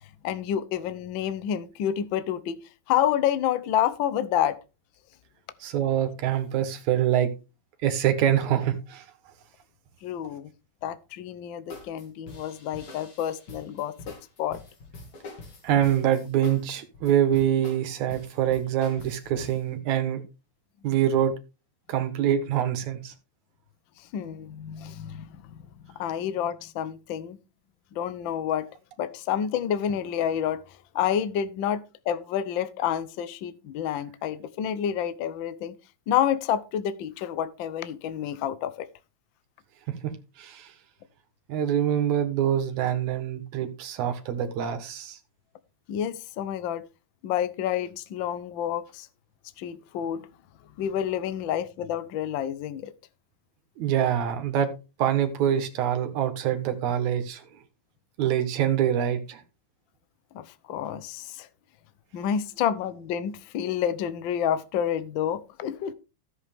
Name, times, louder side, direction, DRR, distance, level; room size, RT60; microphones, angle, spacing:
voice 1, 0.2-2.6 2.9-4.6 10.0-10.5 10.8-14.6 24.0-27.4 27.9-28.7 29.0-35.7 36.1-38.9 45.9-46.9 47.2-49.1 49.6-50.3 50.8-52.9 60.3-61.5 62.1-65.9, left 9 dB, 65° left, 1.2 m, -29 dB
voice 2, 5.6-7.3 7.8-9.0 15.6-20.2 20.8-21.3 21.9-23.1 40.0-40.1 40.4-40.7 41.5-45.2 53.8-54.7 55.0-57.4 58.2-59.4, right 10 dB, 80° right, 2.9 m, -25 dB
sound 1, 11.7-19.7, left 3 dB, 50° left, 3.6 m, -45 dB
13.5 x 8.2 x 3.5 m
omnidirectional pair, 3.3 m